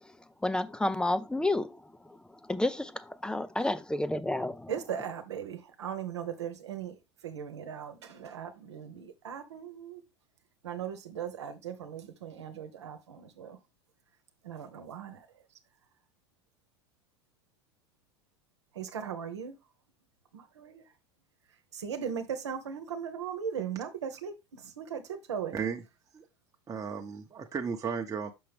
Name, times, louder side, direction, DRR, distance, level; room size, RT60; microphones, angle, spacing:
voice 1, 0.4-1.8 2.5-4.7, left 1 dB, 5° left, 0.6 m, -30 dB
voice 2, 4.7-10.0 10.6-13.6 14.4-15.4 18.7-19.6 20.3-20.9 21.5-25.6, right 8 dB, 80° right, 1.1 m, -38 dB
voice 3, 26.7-28.3, right 6 dB, 25° right, 1.0 m, -34 dB
6.3 x 5.7 x 3.5 m
hypercardioid pair, 85°, 14 cm